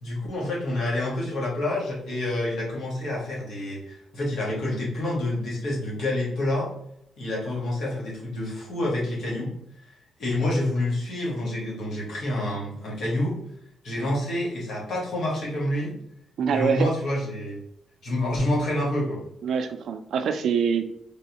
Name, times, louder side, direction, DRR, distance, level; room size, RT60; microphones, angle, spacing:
voice 1, 0.0-6.7 7.2-9.5 10.2-13.4 13.8-15.9 16.5-17.6 18.0-19.2, left 1 dB, 60° left, -4 dB, 1.3 m, -28 dB
voice 2, 16.4-16.9 19.4-20.8, right 6 dB, 60° right, 8 dB, 0.4 m, -24 dB
3.4 x 3.1 x 2.9 m, 0.75 s
wide cardioid pair, 165°, 0 cm